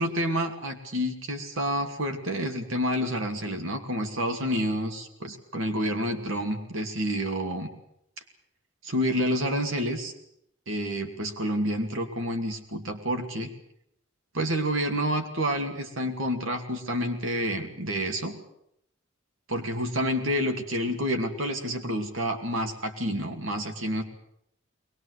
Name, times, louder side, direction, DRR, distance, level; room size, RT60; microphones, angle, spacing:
voice 1, 0.0-7.7 8.8-10.1 10.7-13.5 14.3-18.4 19.5-24.0, equal, 80° right, 5 dB, 2.7 m, -29 dB
22.0 x 20.5 x 8.2 m, 0.75 s
head